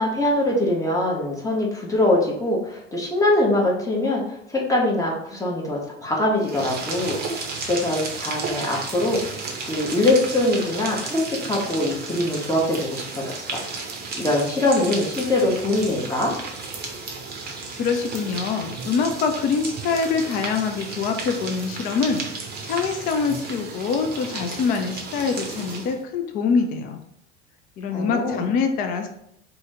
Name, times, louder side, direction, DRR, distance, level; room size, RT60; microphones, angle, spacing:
voice 1, 0.0-4.2 4.5-7.4 7.7-9.4 9.7-13.6 14.2-16.3 27.9-28.5, left 1 dB, 10° left, -3 dB, 1.0 m, -23 dB
sound 1, 6.4-26.0, right 4 dB, 25° right, 0.7 m, -33 dB
voice 2, 17.8-22.2 22.6-27.0 27.8-29.1, left 5 dB, 25° left, 4 dB, 0.4 m, -24 dB
2.8 x 2.7 x 3.5 m, 0.74 s
figure-of-eight pair, 75°, 36 cm